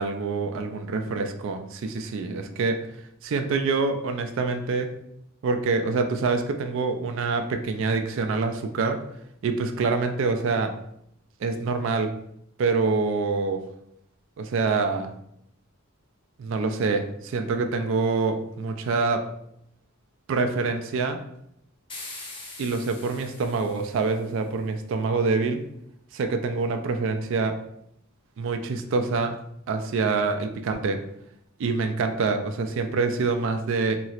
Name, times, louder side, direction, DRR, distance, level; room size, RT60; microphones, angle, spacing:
voice 1, 0.0-2.8 3.2-4.9 5.4-9.0 9.4-10.7 11.4-12.1 12.6-13.6 14.4-15.1 16.4-19.2 20.3-21.2 22.6-25.6 26.1-27.6 28.4-29.4 29.7-31.0 31.6-34.0, right 4 dB, 60° right, 6 dB, 0.3 m, -26 dB
sound 1, 21.9-24.3, left 2 dB, 25° left, 0.5 m, -42 dB
4.2 x 2.0 x 2.4 m, 0.74 s
head